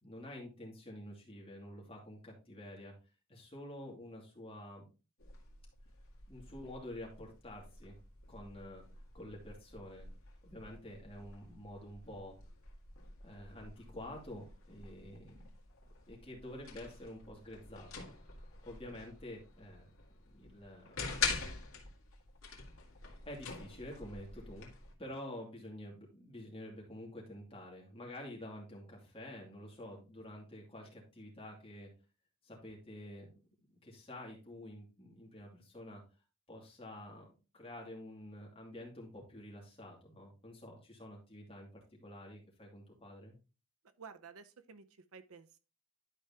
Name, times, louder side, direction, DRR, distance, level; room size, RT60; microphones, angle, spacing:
voice 1, 0.0-2.9 3.3-4.9 6.3-8.0 8.3-8.8 9.1-10.1 10.4-12.4 13.2-15.5 16.1-19.9 20.3-21.1 23.3-24.7 25.0-31.9 32.4-33.3 33.7-36.0 36.5-41.7 42.0-43.4, left 1 dB, 25° left, 2.5 m, -49 dB
sound 1, 5.2-24.9, left 5 dB, 75° left, 2.0 m, -46 dB
voice 2, 44.0-45.6, right 5 dB, 85° right, 0.7 m, -53 dB
11.5 x 4.8 x 2.8 m
head